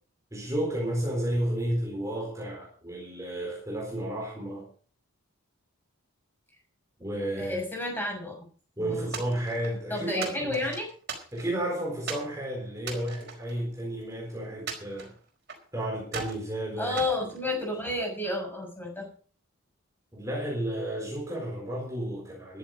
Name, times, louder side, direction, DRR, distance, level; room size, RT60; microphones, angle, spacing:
voice 1, 0.3-4.7 7.0-7.6 8.8-10.7 11.3-15.1 15.7-17.0 20.1-22.6, right 1 dB, 15° right, 4.2 m, -32 dB
voice 2, 7.4-8.4 8.8-9.0 9.9-10.9 16.8-19.1, left 2 dB, 10° left, 6.3 m, -31 dB
sound 1, 9.1-9.8 10.2-11.6 12.1-12.3 12.8-14.1 14.7-15.7 16.1-16.5 17.0-18.0, right 5 dB, 50° right, 4.6 m, -39 dB
14.5 x 11.5 x 5.1 m
head